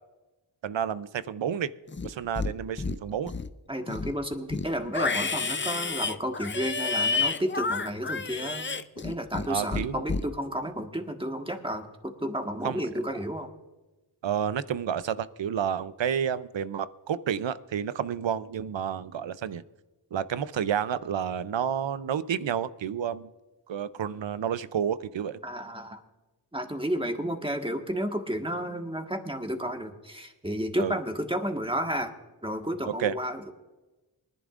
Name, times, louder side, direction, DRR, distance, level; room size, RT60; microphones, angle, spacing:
voice 1, 0.6-1.7 2.0-3.3 9.5-10.0 12.6-12.8 14.2-19.6 20.1-23.3 23.7-25.4 30.8-31.0 33.0-33.2, right 8 dB, 85° right, 15 dB, 0.6 m, -30 dB
Livestock farm animals working animals, 1.9-2.5 2.8-3.5 3.9-9.5 9.7-10.2, left 4 dB, 25° left, 0.5 m, -30 dB
voice 2, 3.7-8.7 9.0-13.5 25.4-26.0 26.5-32.1 32.4-33.5, equal, 10° right, 3 dB, 1.5 m, -32 dB
23.5 x 11.0 x 2.5 m, 1.1 s
wide cardioid pair, 75°, 43 cm